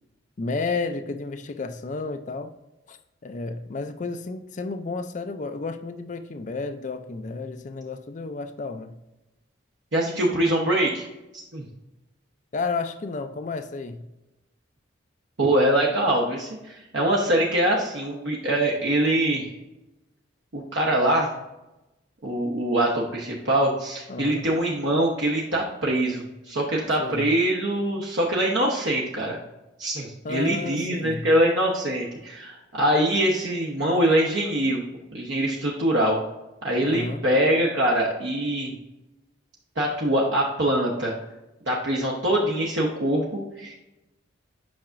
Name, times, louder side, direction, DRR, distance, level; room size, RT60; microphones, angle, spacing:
voice 1, 0.4-2.5 2.9-3.0 3.2-9.0 12.5-14.1 24.1-24.5 27.0-27.3 30.2-31.3 36.8-37.2, left 3 dB, 40° left, 9 dB, 0.4 m, -32 dB
voice 2, 9.9-11.0 11.5-11.6 15.4-19.5 20.5-21.3 22.2-29.4 29.8-34.8 35.1-36.2 36.6-38.7 39.8-41.1 41.7-43.7, right 1 dB, 65° right, -3 dB, 1.0 m, -23 dB
8.6 x 5.7 x 2.5 m, 0.96 s
head